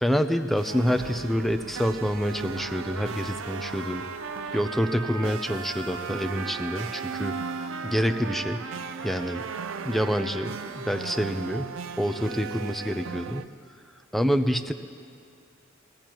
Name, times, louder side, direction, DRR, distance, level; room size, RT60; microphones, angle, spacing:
voice 1, 0.0-4.0 4.5-7.4 7.8-8.6 9.0-9.4 9.8-13.5 14.1-14.7, equal, ahead, 8 dB, 0.5 m, -27 dB
sound 1, 0.6-13.5, right 6 dB, 70° right, 0.4 m, -38 dB
Trumpet, 2.5-11.0, right 4 dB, 90° right, 0.8 m, -39 dB
sound 2, 4.0-6.9, equal, 45° right, 1.0 m, -50 dB
23.5 x 16.0 x 3.0 m, 2.4 s
head